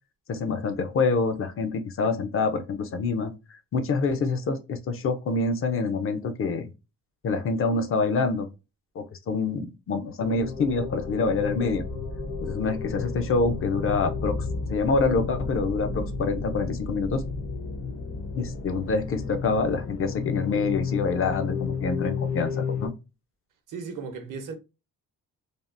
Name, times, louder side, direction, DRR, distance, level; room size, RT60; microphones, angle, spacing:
voice 1, 0.3-3.3 3.7-6.7 7.2-8.5 9.0-11.8 12.4-14.4 14.7-17.2 18.3-22.9, left 4 dB, 40° left, 0.4 m, -26 dB
sound 1, 10.2-22.9, left 4 dB, 70° left, 0.8 m, -32 dB
voice 2, 23.7-24.5, right 5 dB, 65° right, 0.8 m, -36 dB
3.4 x 2.3 x 2.4 m
cardioid pair, 165°, 33 cm